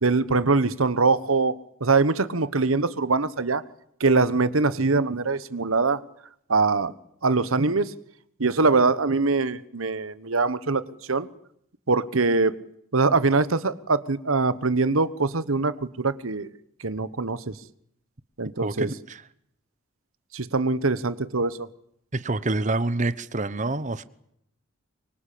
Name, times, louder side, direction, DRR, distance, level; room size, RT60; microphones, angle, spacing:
voice 1, 0.0-1.5 1.8-3.6 4.0-6.0 6.5-6.9 7.2-7.9 8.4-11.3 11.9-12.5 12.9-16.5 16.8-17.5 18.4-18.9 20.3-21.7, right 3 dB, 85° right, 1.3 m, -23 dB
voice 2, 18.6-19.2 22.1-24.0, right 2 dB, 35° right, 1.0 m, -27 dB
25.0 x 24.5 x 8.6 m
head